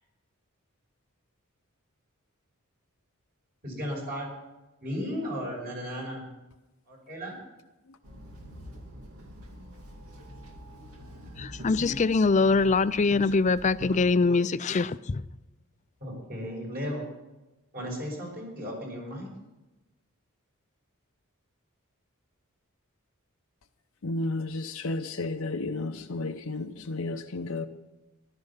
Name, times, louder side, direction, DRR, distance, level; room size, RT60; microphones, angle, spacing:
voice 1, 3.6-4.3 4.8-6.3 6.9-7.4 11.8-11.9 16.0-17.0 17.7-19.3, equal, 45° right, 5.8 m, -35 dB
Walk footsteps / Chatter / Hiss, 8.0-14.0, equal, 85° right, 2.4 m, -45 dB
voice 2, 11.4-15.2, left 4 dB, 35° left, 0.4 m, -23 dB
voice 3, 24.0-27.7, left 2 dB, 70° left, 0.8 m, -32 dB
14.5 x 12.5 x 5.7 m
head